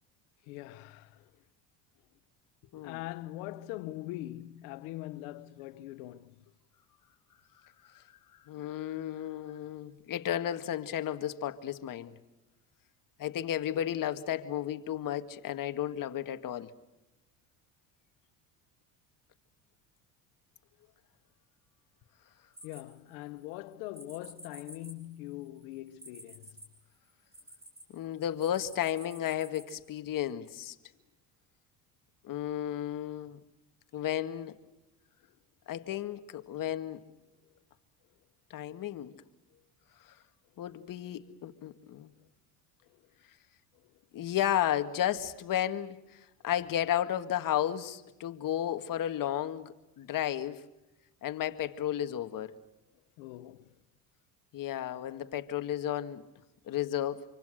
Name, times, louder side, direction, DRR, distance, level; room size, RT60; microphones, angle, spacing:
voice 1, 0.4-1.3 2.8-6.4 22.6-26.6 42.2-42.3 42.8-43.0 43.7-44.0 53.2-53.8, left 16 dB, 85° left, 1.2 m, -42 dB
voice 2, 7.8-12.2 13.2-16.7 27.9-30.8 32.2-33.4 33.9-34.6 35.7-37.0 38.5-39.1 40.0-40.2 40.6-42.1 44.1-50.6 51.2-52.5 54.5-56.3 56.7-57.2, left 11 dB, 55° left, 1.9 m, -33 dB
sound 1, 22.5-23.4 23.9-27.8 28.4-29.8, equal, 15° right, 6.0 m, -51 dB
26.5 x 25.0 x 6.5 m
supercardioid pair, 90°, 40 cm